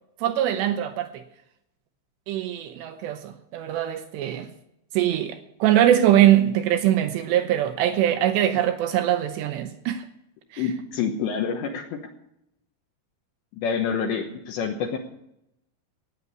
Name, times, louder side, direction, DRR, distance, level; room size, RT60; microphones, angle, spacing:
voice 1, 0.2-1.1 2.3-4.5 5.0-10.0 10.5-10.6, right 12 dB, 85° right, 2.5 m, -22 dB
voice 2, 10.6-12.0 13.6-15.0, left 6 dB, 75° left, 3.0 m, -27 dB
13.5 x 9.5 x 8.3 m
omnidirectional pair, 5.8 m